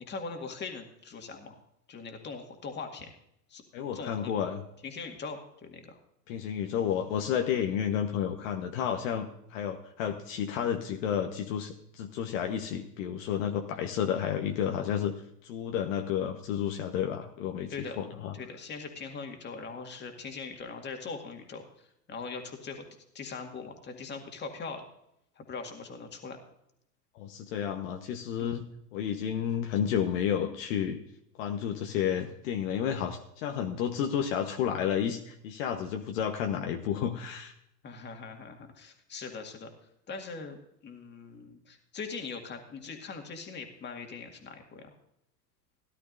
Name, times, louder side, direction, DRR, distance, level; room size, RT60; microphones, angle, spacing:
voice 1, 0.1-1.6 1.9-3.1 3.5-3.6 3.9-4.3 4.8-6.0 17.7-18.0 18.3-21.6 22.1-22.9 23.1-24.8 25.4-26.4 28.4-28.5 37.8-39.7 40.1-40.6 40.8-44.9, left 4 dB, 20° left, 4 dB, 2.0 m, -41 dB
voice 2, 3.7-4.6 6.3-15.1 15.4-18.3 27.1-28.6 28.9-31.0 31.4-37.5, left 9 dB, 50° left, 4 dB, 1.3 m, -31 dB
17.0 x 11.5 x 2.6 m, 0.77 s
hypercardioid pair, 100°, 49 cm